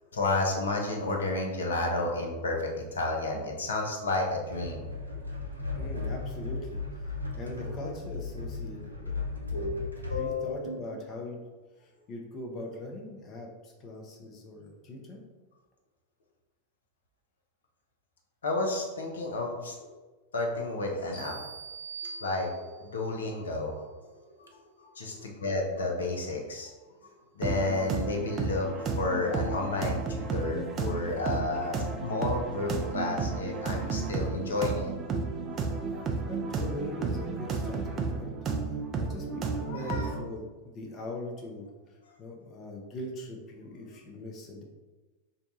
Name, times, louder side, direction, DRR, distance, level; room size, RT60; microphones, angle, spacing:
voice 1, 0.1-4.9 9.5-9.8 10.1-10.7 18.4-19.9 20.3-21.5 22.0-24.5 24.8-26.7 27.0-34.9 39.7-40.1 42.1-42.2, left 2 dB, 70° left, 1 dB, 0.6 m, -31 dB
sound 1, 4.5-10.3, left 3 dB, 90° right, 0.5 m, -36 dB
voice 2, 5.7-6.8 7.3-9.9 10.1-11.4 11.8-15.2 31.0-31.2 36.3-38.4 39.0-41.7 42.2-44.6, left 1 dB, 30° left, 0 dB, 0.7 m, -41 dB
sound 2, 21.1-22.9, right 5 dB, 55° left, 1.0 m, -42 dB
sound 3, 27.4-40.2, right 4 dB, 25° right, 0.4 m, -32 dB
2.6 x 2.2 x 4.0 m, 1.2 s
figure-of-eight pair, 90°, 0 cm